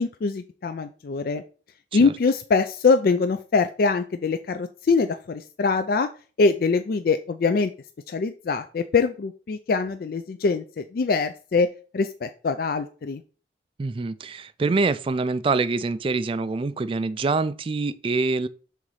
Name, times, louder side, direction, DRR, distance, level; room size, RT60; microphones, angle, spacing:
voice 1, 0.0-1.4 1.9-6.1 6.4-7.7 8.1-11.7 11.9-13.2, left 4 dB, 55° left, 0.3 m, -23 dB
voice 2, 13.8-18.5, right 3 dB, 30° right, 0.3 m, -25 dB
5.6 x 3.8 x 4.7 m
head